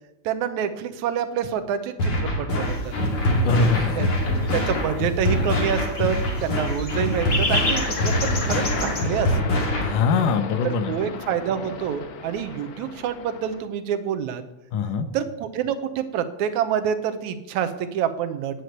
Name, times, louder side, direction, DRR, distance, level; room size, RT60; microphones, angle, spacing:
voice 1, 0.3-2.9 4.0-4.1 4.5-9.6 10.6-14.4 15.1-18.6, right 8 dB, 75° right, 9 dB, 2.1 m, -27 dB
sound 1, 2.0-10.0, left 1 dB, 45° left, 3.0 m, -24 dB
sound 2, 2.6-9.0, left 2 dB, 30° left, 2.2 m, -31 dB
voice 2, 3.2-4.2 9.8-10.9 14.7-15.1, left 4 dB, 85° left, 9 dB, 2.6 m, -22 dB
sound 3, 7.3-13.7, left 5 dB, 70° left, 1.2 m, -36 dB
9.7 x 8.3 x 7.9 m, 0.93 s
omnidirectional pair, 3.6 m